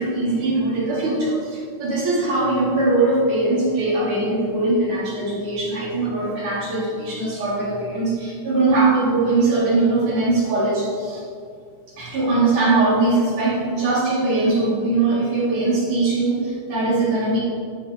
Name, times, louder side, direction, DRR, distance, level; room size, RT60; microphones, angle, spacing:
voice 1, 0.0-11.2 12.0-17.4, right 2 dB, 70° right, -6 dB, 5.9 m, -21 dB
16.5 x 12.0 x 5.2 m, 2.3 s
omnidirectional pair, 3.7 m